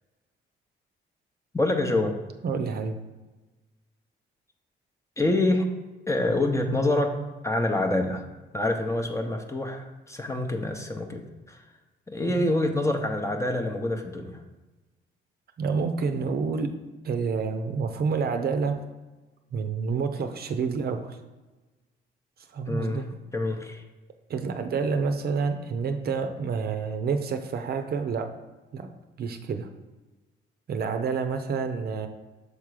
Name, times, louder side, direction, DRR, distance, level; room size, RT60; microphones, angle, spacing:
voice 1, 1.5-2.1 5.2-5.7 6.1-7.2 7.4-8.3 8.5-11.6 12.1-14.4 22.7-23.0 23.3-23.8, left 1 dB, 15° left, 3 dB, 0.8 m, -26 dB
voice 2, 2.4-3.0 12.3-12.4 15.6-16.7 17.0-18.8 19.5-21.2 22.5-23.0 24.3-28.3 28.7-28.9 29.2-29.7 30.7-32.1, right 5 dB, 50° right, 6 dB, 0.6 m, -28 dB
6.6 x 3.6 x 4.8 m, 1.2 s
cardioid pair, 90°, 20 cm